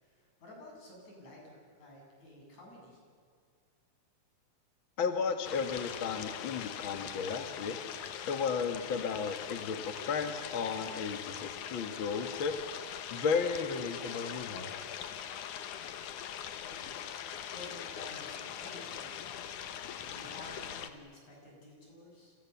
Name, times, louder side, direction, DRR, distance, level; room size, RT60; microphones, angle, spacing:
voice 1, 0.0-3.0 16.6-16.9 17.5-22.4, left 1 dB, 65° left, -1 dB, 9.4 m, -52 dB
voice 2, 5.0-7.8 8.3-12.5 13.1-14.7 15.3-15.4, left 5 dB, 50° left, 6 dB, 1.9 m, -34 dB
sound 1, 5.4-20.9, left 9 dB, 80° left, 2.7 m, -42 dB
29.5 x 27.5 x 7.1 m, 2.2 s
omnidirectional pair, 3.5 m